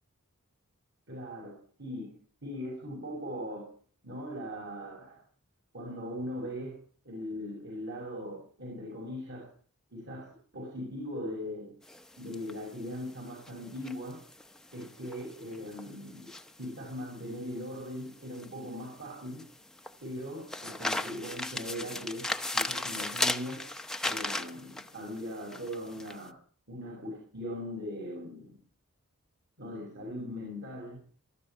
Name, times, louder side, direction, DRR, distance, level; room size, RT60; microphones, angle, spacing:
voice 1, 1.1-2.2 2.4-3.7 4.0-5.2 5.7-6.8 7.0-9.5 9.9-11.7 12.2-14.2 14.7-19.5 20.0-23.7 24.0-26.4 26.7-28.6 29.6-31.0, equal, 55° right, 0 dB, 6.5 m, -40 dB
sound 1, 11.8-26.2, left 2 dB, 5° left, 0.7 m, -37 dB
19.5 x 13.5 x 4.5 m, 0.43 s
head